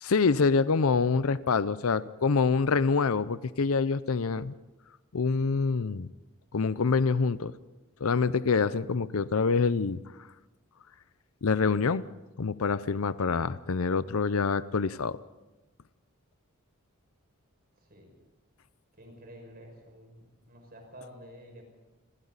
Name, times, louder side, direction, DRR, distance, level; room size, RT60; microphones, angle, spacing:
voice 1, 0.0-4.5 5.1-6.1 6.5-7.5 8.0-10.0 11.4-12.0 12.4-15.2, left 4 dB, 75° left, 16 dB, 0.6 m, -26 dB
voice 2, 19.0-21.6, equal, 45° right, 3 dB, 5.8 m, -49 dB
29.0 x 22.0 x 4.1 m, 1.1 s
head